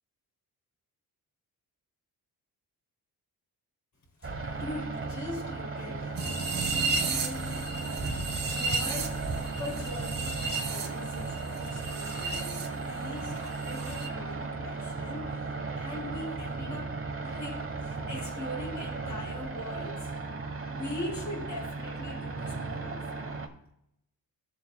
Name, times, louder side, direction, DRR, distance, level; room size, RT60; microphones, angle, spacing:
voice 1, 4.2-6.4 6.9-7.6 8.0-16.9 17.2-20.1 20.7-23.3, left 1 dB, 50° left, -1 dB, 3.9 m, -41 dB
sound 1, 4.2-23.5, right 3 dB, 35° right, 1.2 m, -36 dB
sound 2, 6.2-12.7 12.9-14.1, right 4 dB, 65° right, 1.7 m, -34 dB
15.0 x 7.3 x 2.3 m, 0.79 s
cardioid pair, 100°, 37 cm